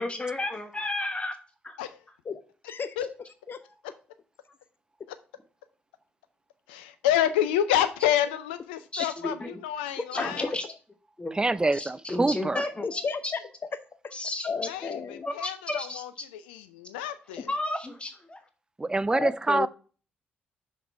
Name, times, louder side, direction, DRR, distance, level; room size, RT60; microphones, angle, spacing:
voice 1, 0.0-1.3 1.6-1.8 8.9-9.6 10.1-10.6 11.2-11.3 11.7-13.0 14.1-14.5 15.3-16.0 17.5-18.4, left 2 dB, 20° left, 1.0 m, -32 dB
voice 2, 2.2-3.1 3.5-3.7 10.1-10.5 12.5-14.1 14.4-15.3 17.4-17.5 19.1-19.7, left 5 dB, 40° left, 0.6 m, -34 dB
voice 3, 6.7-10.5 14.7-17.5, left 11 dB, 80° left, 0.4 m, -28 dB
voice 4, 11.3-12.6 18.8-19.7, right 2 dB, 15° right, 0.4 m, -25 dB
5.9 x 5.3 x 3.4 m
hypercardioid pair, 40°, 5 cm